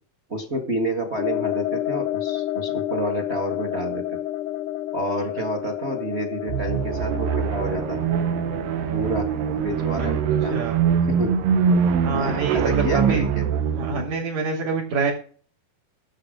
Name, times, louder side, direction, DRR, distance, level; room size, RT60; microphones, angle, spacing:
voice 1, 0.3-4.0 4.9-8.0 8.9-9.3 9.6-10.5 11.1-11.4 12.1-13.5, right 1 dB, 30° right, 5 dB, 1.3 m, -29 dB
sound 1, 1.2-10.7, left 14 dB, 80° left, 1.9 m, -30 dB
sound 2, 6.5-14.1, right 7 dB, 80° right, 2.8 m, -23 dB
voice 2, 10.5-10.8 12.0-13.3 13.8-15.1, right 4 dB, 65° right, -8 dB, 5.6 m, -26 dB
12.5 x 8.4 x 5.1 m, 0.42 s
omnidirectional pair, 4.0 m